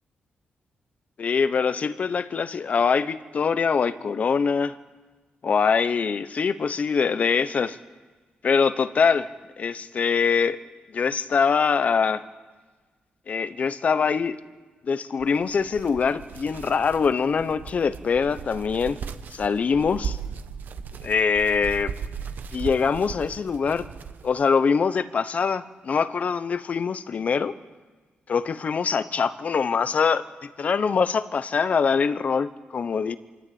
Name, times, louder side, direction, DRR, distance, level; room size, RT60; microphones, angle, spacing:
voice 1, 1.2-4.8 5.4-7.8 8.4-9.3 9.6-10.6 10.9-12.2 13.3-14.4 14.8-19.0 19.3-20.2 21.0-21.9 22.5-23.9 24.2-27.6 28.3-30.3 30.6-33.2, left 5 dB, 45° left, 13 dB, 1.0 m, -23 dB
sound 1, 15.2-24.5, right 6 dB, 65° right, 1.0 m, -37 dB
26.5 x 13.0 x 8.8 m, 1.4 s
cardioid pair, 125°, 3 cm